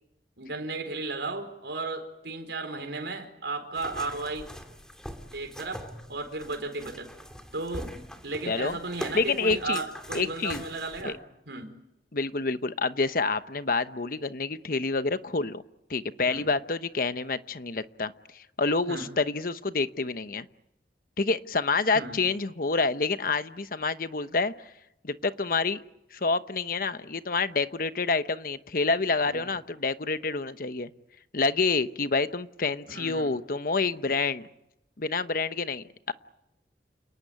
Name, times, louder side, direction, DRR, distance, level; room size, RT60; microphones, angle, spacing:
voice 1, 0.4-4.5 5.3-7.1 7.5-7.9 8.2-11.2 11.5-11.7 16.3-16.5 18.9-19.1 21.9-22.2 29.2-29.5 32.8-33.4, right 3 dB, 90° right, 5 dB, 4.5 m, -35 dB
sound 1, 3.7-11.0, equal, 5° left, 2.7 m, -42 dB
voice 2, 8.5-8.8 9.1-9.8 10.1-10.7 11.0-11.1 12.1-15.6 15.9-20.5 21.2-24.5 25.0-25.8 26.1-30.9 31.3-34.5 35.0-36.1, left 4 dB, 55° left, 12 dB, 1.0 m, -28 dB
29.5 x 18.5 x 9.4 m, 0.85 s
head